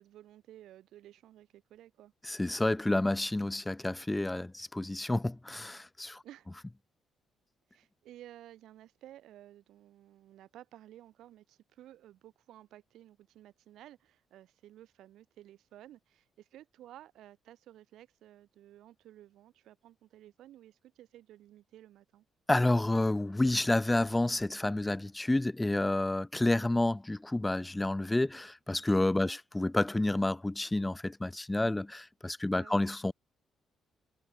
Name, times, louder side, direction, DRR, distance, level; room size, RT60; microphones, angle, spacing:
voice 1, 0.0-2.1 6.2-6.5 7.7-22.3 29.2-29.4 32.5-32.8, right 13 dB, 80° right, 5.8 m, -54 dB
voice 2, 2.3-6.2 22.5-33.1, left 2 dB, 10° left, 1.7 m, -29 dB
cardioid pair, 90°, 0 cm